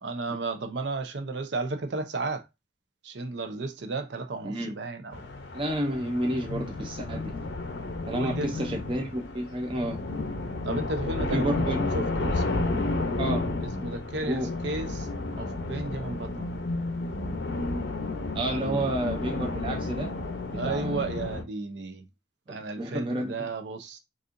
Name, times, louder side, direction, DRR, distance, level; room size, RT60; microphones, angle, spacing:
voice 1, 0.0-2.4 3.0-5.2 8.1-8.7 10.6-12.9 13.8-15.1 15.4-16.5 18.5-19.0 20.6-22.1 22.5-24.0, right 3 dB, 75° right, 0.7 m, -34 dB
voice 2, 4.4-4.7 5.5-7.3 8.1-10.0 11.3-11.8 13.2-13.5 14.2-14.5 18.4-20.1 20.6-21.1 22.5-23.5, right 1 dB, 30° right, 0.5 m, -30 dB
sound 1, 5.1-21.4, left 2 dB, 75° left, 0.7 m, -32 dB
4.1 x 2.5 x 2.5 m
head